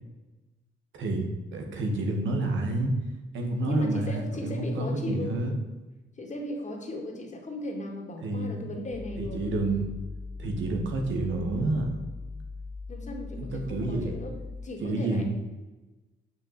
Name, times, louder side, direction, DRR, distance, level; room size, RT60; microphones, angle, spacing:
voice 1, 0.9-2.9 3.3-5.5 8.2-8.6 9.2-9.9 10.4-11.9 13.4-14.1 14.8-15.2, right 2 dB, 75° right, 2 dB, 2.0 m, -29 dB
voice 2, 3.6-5.4 6.2-9.4 12.9-15.2, left 1 dB, 35° left, 2 dB, 2.2 m, -36 dB
sound 1, 8.9-14.7, left 3 dB, 55° left, 2.2 m, -40 dB
6.8 x 6.2 x 7.0 m, 1.1 s
cardioid pair, 90°, 20 cm